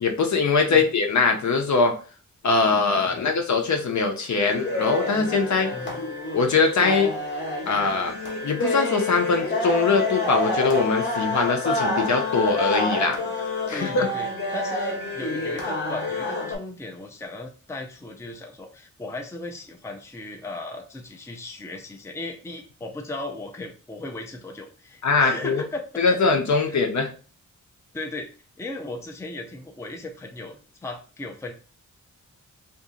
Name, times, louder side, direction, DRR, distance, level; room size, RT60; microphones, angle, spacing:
voice 1, 0.0-2.0 2.4-5.7 6.3-7.1 7.7-8.2 8.4-13.2 13.7-14.1 25.0-25.6 26.0-27.1, left 4 dB, 65° left, 4 dB, 0.7 m, -22 dB
sound 1, 4.4-16.6, left 2 dB, 35° left, 0.9 m, -28 dB
voice 2, 13.7-26.2 26.7-26.8 27.9-28.3 28.6-31.5, left 2 dB, 10° left, 3 dB, 0.4 m, -36 dB
2.8 x 2.6 x 3.7 m, 0.38 s
wide cardioid pair, 135°, 31 cm